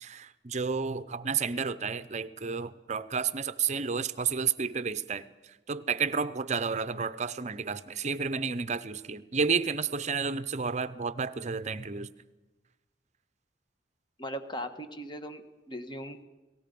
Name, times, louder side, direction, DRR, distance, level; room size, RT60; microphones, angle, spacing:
voice 1, 0.0-5.3 5.7-12.1, right 5 dB, 40° right, 15 dB, 0.7 m, -31 dB
voice 2, 14.2-16.2, equal, 25° left, 8 dB, 1.3 m, -39 dB
30.0 x 18.5 x 5.3 m, 1.1 s
head